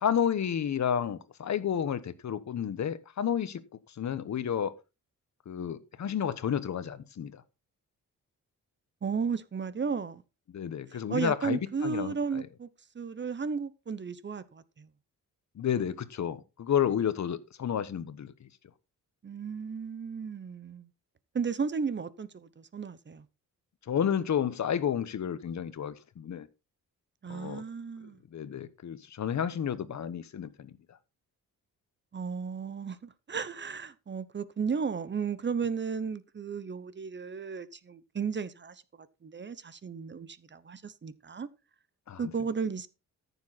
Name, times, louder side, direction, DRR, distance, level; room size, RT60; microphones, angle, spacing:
voice 1, 0.0-3.6 4.0-4.7 5.5-7.4 10.5-12.4 15.6-18.5 23.9-26.5 27.3-27.6 28.3-31.0 42.1-42.3, left 8 dB, 55° left, 1.1 m, -31 dB
voice 2, 9.0-10.2 10.9-12.7 12.9-14.9 19.2-20.9 21.3-23.2 27.2-28.2 32.1-38.8 39.2-41.5 42.2-42.9, right 6 dB, 35° right, 0.9 m, -34 dB
14.0 x 7.1 x 4.1 m
cardioid pair, 120°, 33 cm